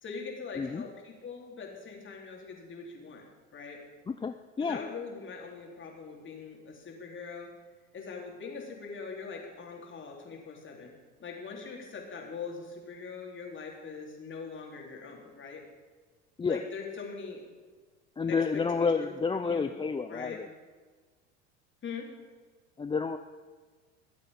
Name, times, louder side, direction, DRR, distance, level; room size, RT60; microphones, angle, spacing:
voice 1, 0.0-3.2 3.5-3.8 4.6-7.5 7.9-10.9 11.2-15.6 16.4-17.4 18.3-19.7 20.1-20.4 21.8-22.1, left 5 dB, 35° left, 0 dB, 4.0 m, -42 dB
voice 2, 4.1-4.8 16.4-16.6 18.2-20.5 22.8-23.2, left 5 dB, 15° left, 8 dB, 0.6 m, -30 dB
22.5 x 8.4 x 5.4 m, 1.4 s
hypercardioid pair, 75°, 35 cm